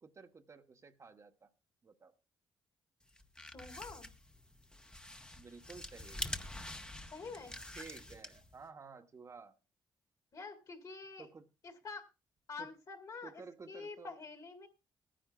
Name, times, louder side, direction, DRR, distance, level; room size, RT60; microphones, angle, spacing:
voice 1, 0.0-1.5 1.8-2.1 5.4-6.3 7.8-9.6 11.2-11.5 12.6-12.7 13.2-14.2, right 4 dB, 40° right, 0.9 m, -53 dB
sound 1, 3.1-8.6, left 1 dB, 10° left, 0.8 m, -46 dB
voice 2, 3.5-4.1 7.1-7.6 10.3-11.3 11.8-12.1 12.5-13.3 13.7-14.7, left 4 dB, 50° left, 2.3 m, -47 dB
21.0 x 10.0 x 2.2 m
cardioid pair, 75°, 8 cm